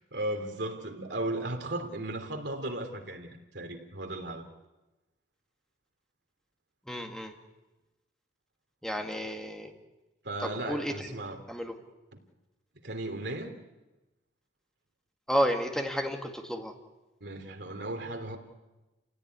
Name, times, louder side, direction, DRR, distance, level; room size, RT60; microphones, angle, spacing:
voice 1, 0.1-4.5 10.2-11.4 12.1-12.2 12.8-13.6 17.2-18.4, right 1 dB, 65° right, 3.1 m, -36 dB
voice 2, 6.9-7.3 8.8-9.7 10.4-11.7 15.3-16.7, equal, 5° left, 2.1 m, -32 dB
29.0 x 16.5 x 9.6 m
head